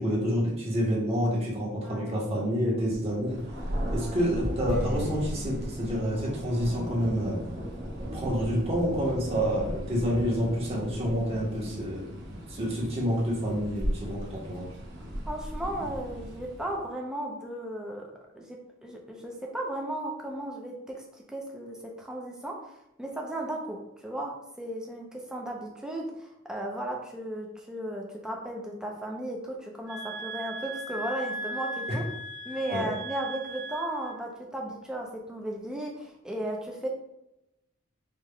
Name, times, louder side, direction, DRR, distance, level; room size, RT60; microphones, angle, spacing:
voice 1, 0.0-3.4 3.9-7.4 8.1-12.0 12.5-14.7 32.7-32.9, equal, 30° right, -5 dB, 1.2 m, -28 dB
voice 2, 1.8-2.2 4.0-4.2 7.8-7.9 15.3-18.1 18.3-21.0 21.3-22.6 23.0-32.1 32.4-36.9, right 1 dB, 5° right, -1 dB, 0.6 m, -35 dB
Thunder, 3.2-16.8, equal, 55° right, 1.0 m, -36 dB
Strum, 4.7-9.9, right 1 dB, 55° left, 0.9 m, -44 dB
sound 1, 29.9-34.2, right 1 dB, 80° right, 0.8 m, -38 dB
4.7 x 3.5 x 2.3 m, 0.86 s
head